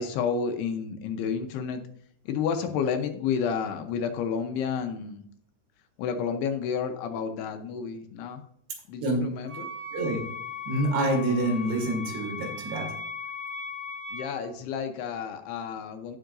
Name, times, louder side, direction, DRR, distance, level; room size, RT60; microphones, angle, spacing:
voice 1, 0.0-1.8 2.3-5.2 6.0-8.4 8.9-9.7 14.1-16.2, left 6 dB, 80° left, 6 dB, 2.8 m, -30 dB
Wind instrument woodwind instrument, 9.5-14.4, left 4 dB, 55° right, 3.8 m, -38 dB
voice 2, 10.7-12.9, right 1 dB, 85° right, 1 dB, 4.4 m, -27 dB
16.0 x 5.7 x 2.6 m, 0.66 s
omnidirectional pair, 4.9 m